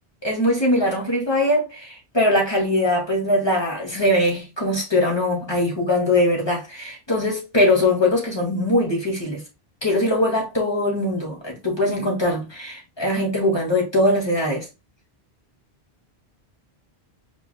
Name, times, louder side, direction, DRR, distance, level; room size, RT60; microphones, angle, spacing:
voice 1, 0.2-9.4 9.8-14.7, left 1 dB, 25° left, 2.0 m, -21 dB
4.8 x 4.7 x 2.2 m
omnidirectional pair, 1.1 m